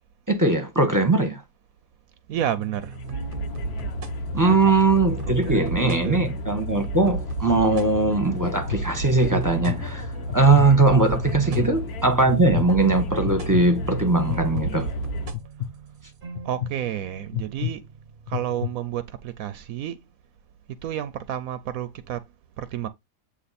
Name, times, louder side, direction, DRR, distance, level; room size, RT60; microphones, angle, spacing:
voice 1, 0.3-1.4 4.3-14.9, right 3 dB, 15° right, 1.1 m, -20 dB
sound 1, 2.3-18.6, right 5 dB, 45° right, 0.8 m, -36 dB
voice 2, 2.3-3.0 4.5-4.6 5.2-6.3 11.4-11.7 16.4-17.8 18.3-20.0 20.8-22.2 22.6-22.9, right 11 dB, 80° right, 1.0 m, -30 dB
sound 2, 2.7-15.3, left 1 dB, 90° left, 1.4 m, -33 dB
sound 3, 7.4-7.8 8.3-8.8 9.3-9.8 10.3-10.7 11.3-11.7 12.3-12.7 13.3-13.6 14.3-14.7 15.3-15.7 16.4-16.7 17.3-17.7 18.3-18.7, left 13 dB, 60° left, 0.9 m, -29 dB
8.1 x 2.9 x 4.2 m
omnidirectional pair, 1.5 m